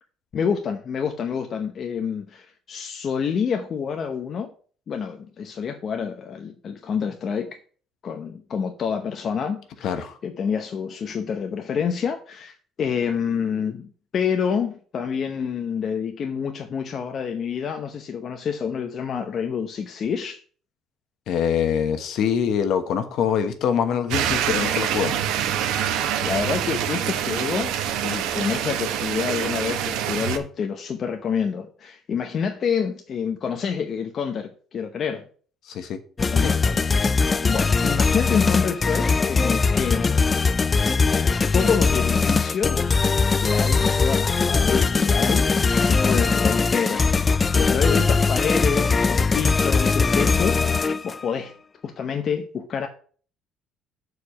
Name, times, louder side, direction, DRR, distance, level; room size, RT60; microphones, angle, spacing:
voice 1, 0.3-4.5 4.9-7.6 8.0-9.9 10.2-13.9 14.1-20.4 26.2-35.2 36.2-40.3 41.5-43.0 43.4-47.2 47.6-51.5 51.8-52.9, left 6 dB, 35° left, 0.8 m, -28 dB
voice 2, 9.8-10.2 21.3-25.1 35.6-36.0 36.4-36.5, left 8 dB, 55° left, 1.2 m, -24 dB
sound 1, 24.1-30.4, right 10 dB, 75° right, 1.1 m, -25 dB
sound 2, 36.2-51.2, left 4 dB, 20° left, 0.4 m, -20 dB
6.8 x 4.8 x 6.9 m
cardioid pair, 160°, 0 cm